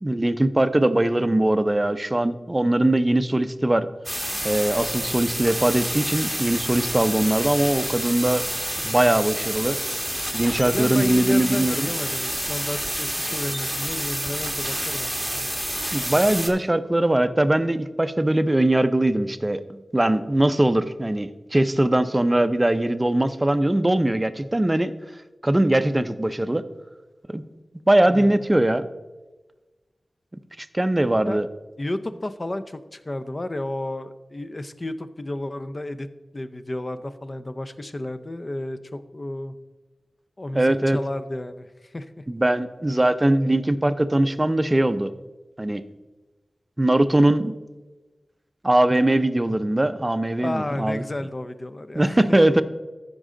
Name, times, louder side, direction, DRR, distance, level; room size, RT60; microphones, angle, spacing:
voice 1, 0.0-3.9 4.4-8.4 8.8-9.8 10.3-11.9 15.9-24.9 25.4-26.6 27.3-27.4 27.9-28.9 30.6-31.5 40.5-41.0 42.3-45.1 45.6-45.8 46.8-47.6 48.6-51.0 51.9-52.6, right 1 dB, 20° right, 12 dB, 0.5 m, -21 dB
sound 1, 4.1-16.5, equal, ahead, 1.2 m, -29 dB
voice 2, 10.7-15.5 28.1-28.4 31.2-31.4 31.8-36.1 36.3-39.5 40.4-42.2 50.4-52.6, left 1 dB, 35° left, 10 dB, 0.5 m, -32 dB
14.0 x 5.4 x 3.8 m, 1.2 s
wide cardioid pair, 65°, 0 cm